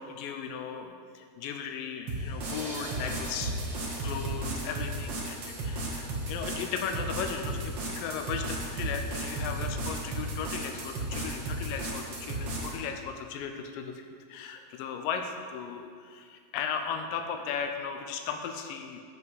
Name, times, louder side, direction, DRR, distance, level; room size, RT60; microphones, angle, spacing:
voice 1, 0.0-3.5 4.0-19.0, left 6 dB, 80° left, 5 dB, 2.2 m, -36 dB
sound 1, 2.1-12.8, right 1 dB, 90° right, 1.0 m, -34 dB
7.9 x 5.7 x 7.6 m, 2.1 s
omnidirectional pair, 4.4 m